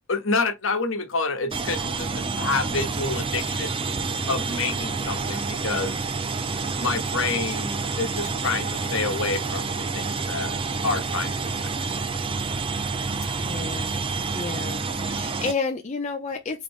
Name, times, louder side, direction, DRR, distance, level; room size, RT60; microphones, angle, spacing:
voice 1, 0.1-3.7 4.3-6.0 6.7-11.5 13.4-13.5, left 4 dB, 60° left, 1.1 m, -28 dB
sound 1, 1.5-15.5, right 4 dB, 25° right, 0.4 m, -28 dB
voice 2, 13.4-14.0 14.3-16.6, left 4 dB, 30° left, 0.5 m, -31 dB
3.7 x 3.3 x 3.4 m
head